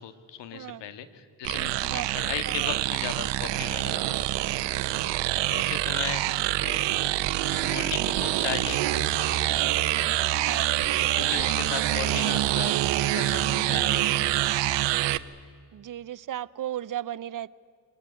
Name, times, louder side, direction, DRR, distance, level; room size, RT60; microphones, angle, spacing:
voice 1, 0.0-4.6 5.1-6.8 7.5-10.1 11.1-14.8, left 9 dB, 80° left, 11 dB, 2.0 m, -38 dB
voice 2, 0.5-0.8 1.9-2.8 6.3-6.5 10.4-10.7 13.7-13.9 15.7-17.5, right 12 dB, 50° right, 20 dB, 0.7 m, -36 dB
sound 1, 1.4-15.2, right 15 dB, 80° right, 0.9 m, -26 dB
24.0 x 19.5 x 9.7 m, 2.2 s
supercardioid pair, 70°, 42 cm